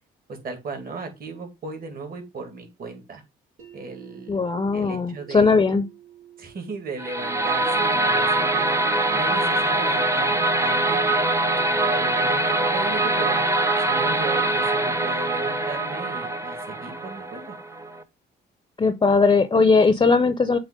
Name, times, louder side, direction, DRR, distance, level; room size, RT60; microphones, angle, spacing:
voice 1, 0.3-3.2 3.7-4.4 4.7-5.6 6.4-8.7 9.1-11.3 11.7-13.4 13.8-17.6, right 3 dB, 50° right, 2.4 m, -36 dB
sound 1, 3.6-15.5, right 11 dB, 85° right, 2.1 m, -52 dB
voice 2, 4.3-5.8 18.8-20.6, left 4 dB, 25° left, 0.6 m, -19 dB
sound 2, 7.0-18.0, right 2 dB, 15° right, 0.7 m, -23 dB
7.4 x 3.0 x 5.0 m
cardioid pair, 90°, 20 cm